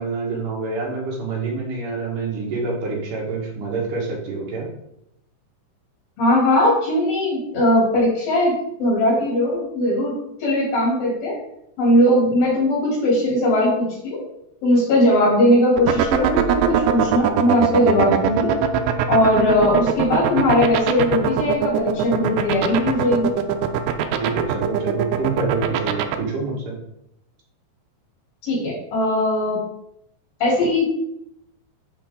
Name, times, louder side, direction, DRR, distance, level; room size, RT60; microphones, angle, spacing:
voice 1, 0.0-4.6 24.2-26.7, right 3 dB, 65° right, -2 dB, 3.3 m, -26 dB
voice 2, 6.2-8.5 8.8-10.1 10.4-11.3 11.8-14.2 14.6-18.5 19.1-23.3 28.4-29.6 30.4-30.9, left 1 dB, 80° left, -5 dB, 4.9 m, -19 dB
sound 1, 15.8-26.2, right 10 dB, 85° right, 2.4 m, -20 dB
10.0 x 4.2 x 3.8 m, 0.78 s
omnidirectional pair, 4.1 m